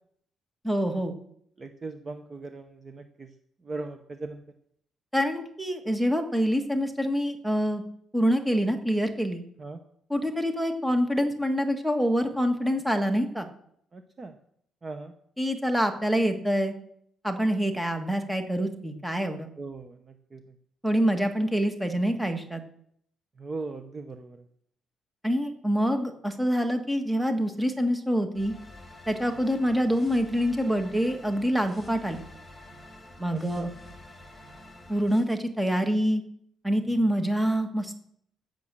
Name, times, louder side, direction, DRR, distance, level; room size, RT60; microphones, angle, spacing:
voice 1, 0.6-1.1 5.1-7.8 8.1-9.4 10.1-13.5 15.4-16.7 17.2-19.5 20.8-22.6 25.2-28.5 29.1-32.2 33.2-33.7 34.9-36.2 36.6-38.0, equal, 5° right, 6 dB, 1.4 m, -26 dB
voice 2, 1.6-3.3 3.6-4.4 9.6-9.8 13.9-14.3 14.8-15.1 19.6-20.6 23.4-24.4 33.3-33.7, right 3 dB, 25° right, 7 dB, 0.8 m, -39 dB
sound 1, 28.3-35.2, left 1 dB, 10° left, 3.5 m, -48 dB
15.0 x 6.5 x 7.3 m, 0.69 s
cardioid pair, 145°, 0 cm